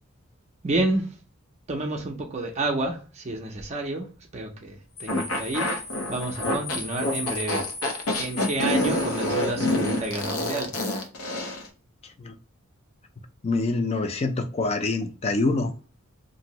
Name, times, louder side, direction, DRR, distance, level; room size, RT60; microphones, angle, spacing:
voice 1, 0.6-1.0 1.7-4.1 4.3-5.7 6.1-7.6 8.2-10.7, right 2 dB, 30° right, 2 dB, 0.5 m, -29 dB
sound 1, 5.0-10.3, left 4 dB, 70° left, 1.5 m, -38 dB
sound 2, 5.1-11.7, left 1 dB, 90° left, 0.7 m, -27 dB
voice 2, 12.0-12.3 13.4-15.7, left 3 dB, 30° left, 8 dB, 0.4 m, -26 dB
2.8 x 2.6 x 2.8 m, 0.39 s
head